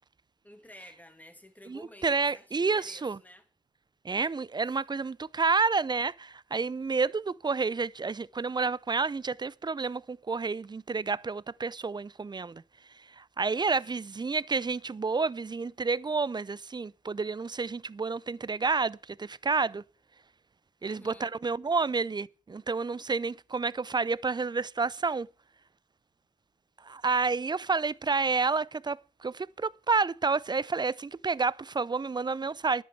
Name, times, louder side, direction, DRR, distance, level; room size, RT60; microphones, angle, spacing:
voice 1, 0.4-3.5 4.7-4.8 13.5-14.0 20.8-21.3, left 1 dB, 10° left, 2.4 m, -52 dB
voice 2, 1.7-3.2 4.0-12.6 13.1-19.8 20.8-25.3 26.8-32.8, right 4 dB, 30° right, 0.5 m, -30 dB
10.0 x 7.9 x 7.9 m
supercardioid pair, 50°, 15 cm